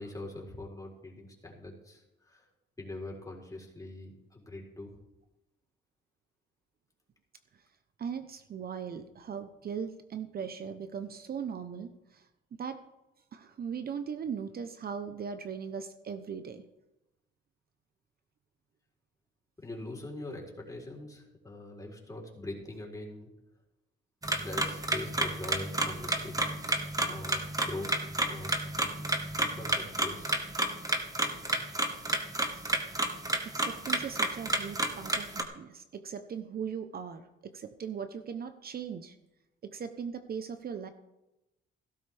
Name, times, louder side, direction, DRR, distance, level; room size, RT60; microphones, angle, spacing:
voice 1, 0.0-2.5 2.8-4.9 19.6-23.3 24.4-27.4 27.6-27.9 28.2-28.6 29.4-30.5, left 2 dB, 15° left, -2 dB, 4.1 m, -43 dB
voice 2, 8.0-12.3 12.6-12.8 13.3-16.6 33.5-39.1 39.6-40.9, right 7 dB, 50° right, 9 dB, 1.0 m, -39 dB
sound 1, 24.2-35.4, right 1 dB, 15° right, 1.5 m, -31 dB
16.5 x 12.5 x 3.5 m, 0.94 s
cardioid pair, 90°, 20 cm